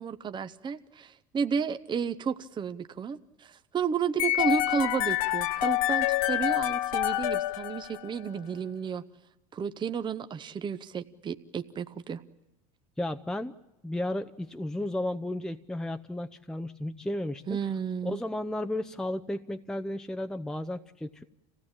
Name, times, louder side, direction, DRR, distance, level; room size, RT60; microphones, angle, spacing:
voice 1, 0.0-9.0 9.5-12.2 17.5-18.2, right 6 dB, 25° right, 10 dB, 0.8 m, -32 dB
sound 1, 4.2-8.3, left 15 dB, 80° left, 0.9 m, -27 dB
voice 2, 13.0-13.5 13.8-17.4 18.0-21.2, left 1 dB, 5° left, 6 dB, 0.7 m, -33 dB
26.0 x 16.5 x 8.8 m, 1.0 s
supercardioid pair, 95°, 17 cm